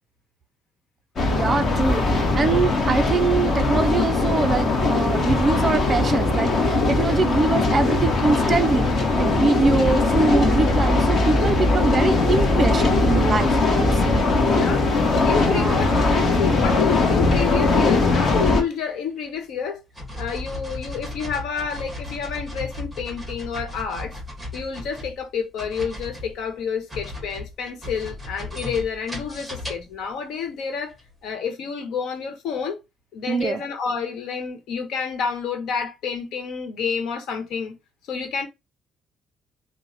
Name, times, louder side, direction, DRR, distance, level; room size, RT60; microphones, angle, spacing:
sound 1, 1.2-18.6, left 3 dB, 35° left, 0.9 m, -20 dB
voice 1, 1.3-8.9 9.2-14.3 15.4-15.9 33.3-33.6, right 4 dB, 25° right, 0.3 m, -23 dB
voice 2, 1.9-2.3 11.3-12.3 14.5-14.9 15.3-19.8 20.2-24.1 24.5-30.9 31.2-32.8 33.1-37.7 38.1-38.5, left 6 dB, 70° left, 1.0 m, -29 dB
sound 2, 18.7-18.8 19.2-19.4 19.9-25.3 25.6-30.0 30.9-31.0, left 2 dB, ahead, 1.0 m, -35 dB
4.6 x 2.0 x 3.9 m
cardioid pair, 175°, 0 cm